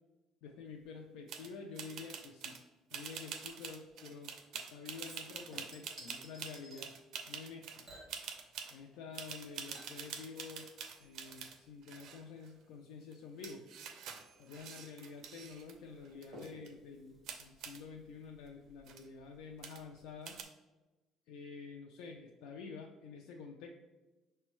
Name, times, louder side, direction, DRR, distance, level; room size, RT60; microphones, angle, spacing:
voice 1, 0.4-2.6 2.9-4.3 4.7-6.9 7.3-7.9 8.7-13.7 14.4-20.4 21.3-23.7, left 5 dB, 85° left, 2 dB, 0.3 m, -49 dB
sound 1, 1.3-1.5 1.7-2.6 2.9-7.8 8.1-8.7 9.1-11.6 11.8-12.5 13.1-13.2 13.4-15.7 16.0-16.7 17.2-17.8 18.5-18.6 18.8-19.1 19.6-20.0 20.2-20.4, right 7 dB, 60° right, 0.5 m, -46 dB
Chink clink / Liquid, 5.0-6.9 7.8-9.0 9.3-18.3 18.6-18.7, right 1 dB, 20° right, 1.4 m, -58 dB
5.9 x 2.2 x 3.0 m, 1.1 s
cardioid pair, 150°, 0 cm